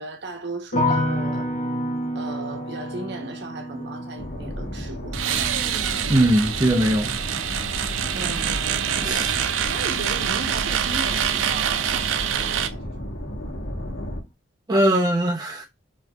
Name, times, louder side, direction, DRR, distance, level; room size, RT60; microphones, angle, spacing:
voice 1, 0.0-1.5 2.1-5.6 8.1-12.9, right 2 dB, 60° right, 0.8 m, -36 dB
sound 1, 0.7-11.8 12.1-12.8, left 1 dB, 35° left, 0.6 m, -31 dB
sound 2, 4.2-14.2, equal, 85° left, 1.1 m, -33 dB
sound 3, 5.1-12.7, right 9 dB, 80° right, 0.4 m, -25 dB
voice 2, 6.1-7.2 9.0-9.4 14.7-15.6, right 1 dB, 20° right, 0.5 m, -20 dB
4.5 x 2.7 x 2.2 m
head